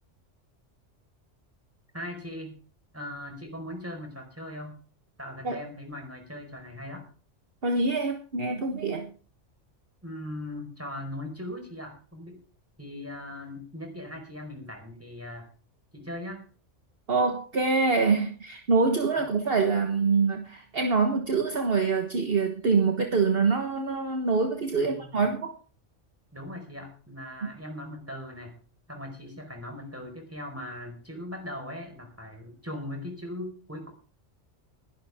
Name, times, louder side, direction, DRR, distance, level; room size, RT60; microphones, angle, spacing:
voice 1, 1.9-2.6 2.9-4.7 5.2-7.1 10.0-12.4 12.8-15.5 15.9-16.4 19.2-19.3 24.8-25.2 26.3-28.6 28.9-33.9, left 1 dB, 10° right, 3 dB, 4.8 m, -39 dB
voice 2, 7.6-9.1 17.1-25.5 27.4-27.5, right 4 dB, 50° right, 4 dB, 1.5 m, -25 dB
21.5 x 11.0 x 3.6 m, 0.39 s
omnidirectional pair, 1.2 m